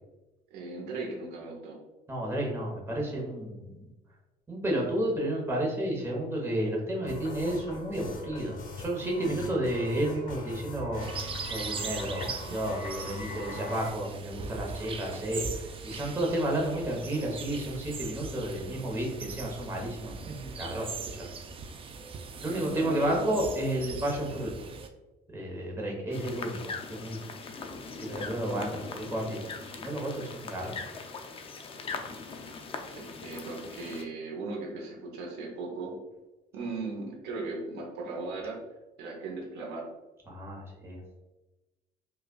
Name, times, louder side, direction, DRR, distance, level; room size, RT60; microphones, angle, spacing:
voice 1, 0.5-1.8 22.4-23.5 32.9-35.9 36.5-38.6 39.0-39.9, right 3 dB, 90° right, -1 dB, 0.9 m, -37 dB
voice 2, 2.1-3.8 4.5-21.3 22.4-24.5 25.3-27.2 28.0-30.8 40.3-41.0, right 1 dB, 15° right, -2 dB, 1.0 m, -32 dB
sound 1, 7.0-13.9, left 2 dB, 55° left, 0.8 m, -41 dB
sound 2, 11.0-24.9, right 5 dB, 35° right, 0.4 m, -40 dB
sound 3, 26.1-34.0, left 4 dB, 35° left, 0.4 m, -41 dB
4.9 x 2.4 x 2.3 m, 1.1 s
cardioid pair, 110°, 17 cm